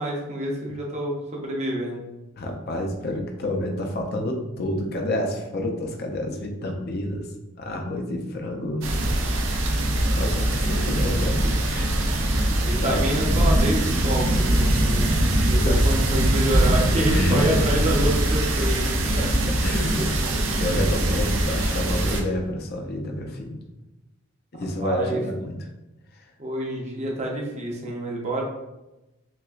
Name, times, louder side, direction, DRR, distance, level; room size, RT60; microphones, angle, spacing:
voice 1, 0.0-2.1 12.6-18.8 19.1-19.3 19.9-20.1 20.4-20.6 24.8-25.2 26.4-28.4, right 1 dB, 30° right, -1 dB, 0.7 m, -28 dB
voice 2, 2.4-7.3 7.6-8.9 10.2-12.3 12.8-13.0 15.6-15.8 16.5-17.7 19.6-20.2 20.5-23.6 24.5-25.6 26.1-26.2, left 1 dB, 50° left, 2 dB, 0.5 m, -28 dB
sound 1, 8.8-22.2, right 1 dB, 70° right, 0.6 m, -22 dB
5.8 x 2.2 x 2.4 m, 0.99 s
head